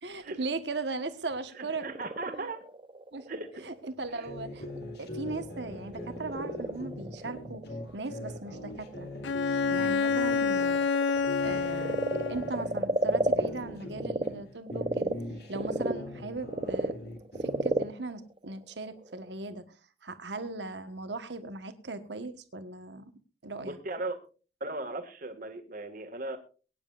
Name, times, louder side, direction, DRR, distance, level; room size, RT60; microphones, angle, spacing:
voice 1, 0.0-1.9 2.3-2.5 3.1-3.3 3.6-7.6 7.9-9.1 9.5-10.8 11.4-12.0 12.3-15.1 15.5-16.9 17.4-19.6 20.0-23.1 23.4-23.8, right 3 dB, 70° right, 9 dB, 1.4 m, -38 dB
Frog, 1.4-14.3 14.7-19.3, right 1 dB, 30° right, 0.8 m, -34 dB
voice 2, 1.6-2.6 3.3-3.6 4.1-4.3 15.8-16.0 23.7-24.2 24.6-26.4, right 2 dB, 50° right, 6 dB, 2.0 m, -37 dB
sound 1, 4.3-10.7 11.1-14.4 14.7-17.8, left 1 dB, 60° left, 2.3 m, -42 dB
Bowed string instrument, 9.2-12.7, left 5 dB, 85° left, 0.5 m, -28 dB
23.0 x 9.9 x 2.5 m, 0.36 s
head